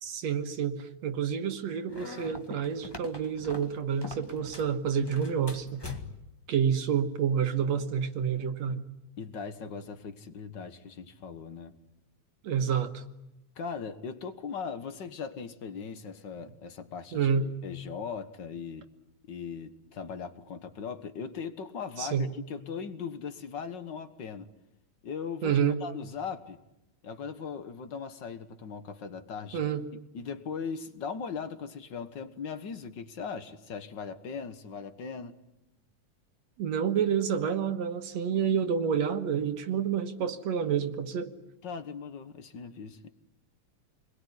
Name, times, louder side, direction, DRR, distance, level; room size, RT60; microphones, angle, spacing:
voice 1, 0.0-5.8 6.5-8.8 12.4-13.0 17.1-17.5 22.0-22.3 25.4-25.8 29.5-29.8 36.6-41.3, right 7 dB, 65° right, 7 dB, 2.4 m, -29 dB
sound 1, 1.9-4.7 5.0-6.3, left 2 dB, 10° left, 1.1 m, -43 dB
voice 2, 9.2-11.7 13.6-18.9 19.3-24.5 25.0-26.6 27.0-29.6 30.1-35.4 41.6-43.1, left 6 dB, 50° left, 10 dB, 1.5 m, -39 dB
28.5 x 21.5 x 9.7 m, 0.92 s
omnidirectional pair, 3.5 m